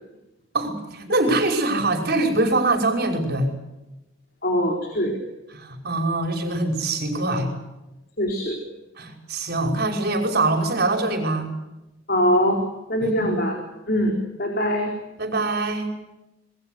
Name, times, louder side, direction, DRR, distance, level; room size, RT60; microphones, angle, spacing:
voice 1, 0.5-3.5 5.5-7.5 9.0-11.5 13.0-13.3 15.2-15.9, right 2 dB, 50° right, 4 dB, 5.5 m, -23 dB
voice 2, 4.4-5.2 8.2-8.6 12.1-12.6 12.9-13.5 13.9-14.9, equal, 50° left, 2 dB, 4.4 m, -22 dB
26.5 x 21.0 x 8.1 m, 0.95 s
head